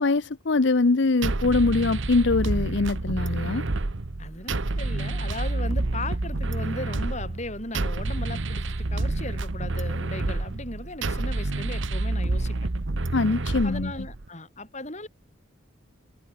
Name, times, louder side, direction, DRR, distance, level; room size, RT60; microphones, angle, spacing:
voice 1, 0.0-3.6 13.1-13.9, left 3 dB, 60° left, 0.7 m, -23 dB
sound 1, 1.2-14.2, right 2 dB, 65° right, 1.1 m, -28 dB
voice 2, 4.2-12.6 13.6-15.1, left 2 dB, 35° left, 5.3 m, -37 dB
head